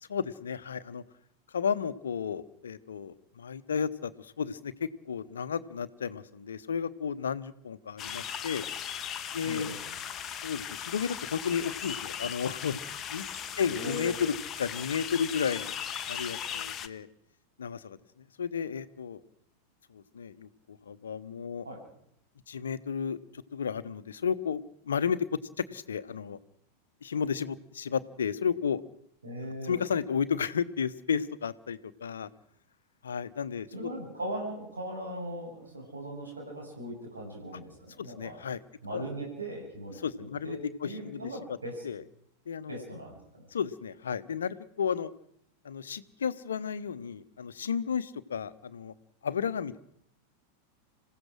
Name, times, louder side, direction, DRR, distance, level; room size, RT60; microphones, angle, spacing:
voice 1, 0.0-1.0 1.5-8.6 9.3-9.7 10.4-13.3 13.6-15.8 16.1-17.1 17.6-18.0 18.4-19.2 19.9-21.7 22.5-23.2 23.5-25.3 25.6-26.4 27.0-28.8 29.6-32.3 33.0-33.9 38.0-38.6 38.9-39.0 40.0-41.6 41.8-42.0 42.5-42.8 43.5-45.1 45.6-48.9 49.2-49.8, left 7 dB, 65° left, 14 dB, 1.0 m, -33 dB
sound 1, 8.0-16.9, left 8 dB, 25° left, 1.1 m, -38 dB
voice 2, 9.4-9.8 13.7-14.1 21.6-21.8 29.2-29.8 33.7-38.4 38.8-40.0 40.4-40.6 40.8-41.8 42.7-43.4, right 1 dB, 75° right, -1 dB, 7.5 m, -39 dB
27.0 x 16.0 x 6.4 m, 0.72 s
figure-of-eight pair, 90°, 0 cm